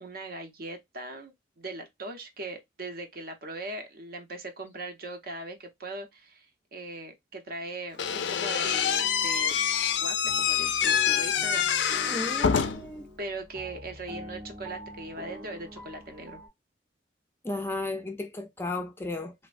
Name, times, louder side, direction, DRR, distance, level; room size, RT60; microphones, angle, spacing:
voice 1, 0.0-9.6 10.0-11.7 13.2-16.4, right 2 dB, 60° right, 0.7 m, -40 dB
Slam / Squeak, 8.0-13.0, left 8 dB, 90° left, 0.4 m, -26 dB
sound 1, 8.6-16.5, equal, 15° right, 0.8 m, -44 dB
voice 2, 12.1-13.1 17.4-19.3, left 2 dB, 15° left, 0.4 m, -34 dB
3.1 x 2.1 x 2.5 m
head